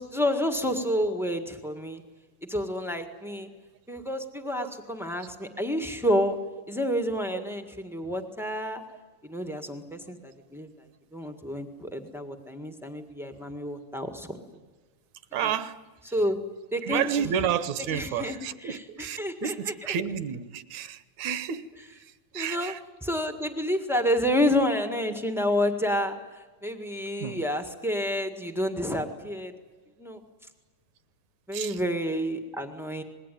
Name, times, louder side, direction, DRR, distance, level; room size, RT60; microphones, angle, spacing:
voice 1, 0.0-2.0 2.5-3.5 3.9-6.4 6.7-8.8 9.2-10.7 11.1-14.4 15.4-15.5 16.1-16.4 16.7-17.0 17.9-19.7 22.3-22.7 23.0-29.5 30.0-30.2 31.5-33.0, equal, 5° right, 4 dB, 0.5 m, -29 dB
voice 2, 15.3-15.8 16.8-22.8 27.2-27.4 31.5-31.8, right 9 dB, 70° right, 13 dB, 2.2 m, -31 dB
27.0 x 20.5 x 9.2 m, 1.3 s
omnidirectional pair, 3.5 m